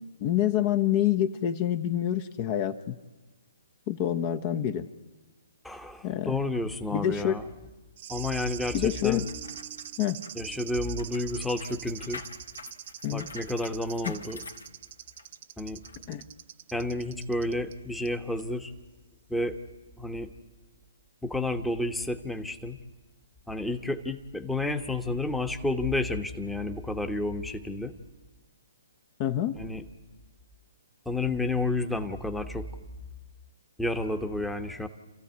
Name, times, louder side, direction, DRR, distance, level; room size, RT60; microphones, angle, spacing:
voice 1, 0.2-3.0 3.9-4.9 6.0-6.4 6.9-7.4 8.7-9.2 10.0-10.2 13.0-13.3 14.0-14.1 16.1-16.2 29.2-29.6, left 11 dB, 35° left, 10 dB, 1.0 m, -27 dB
voice 2, 5.6-7.4 8.1-9.3 9.7-9.9 10.4-12.2 13.1-14.4 15.6-15.8 16.7-18.7 19.3-19.6 20.0-20.3 21.2-22.8 23.5-28.0 29.6-29.8 31.0-32.7 33.8-34.9, left 2 dB, 5° left, 7 dB, 1.1 m, -31 dB
sound 1, 8.0-17.7 18.1-18.2, right 12 dB, 45° right, 0.9 m, -43 dB
sound 2, 9.1-15.4 15.8-16.0, left 4 dB, 85° left, 2.3 m, -46 dB
28.5 x 14.5 x 9.6 m, 1.2 s
hypercardioid pair, 140°, 0 cm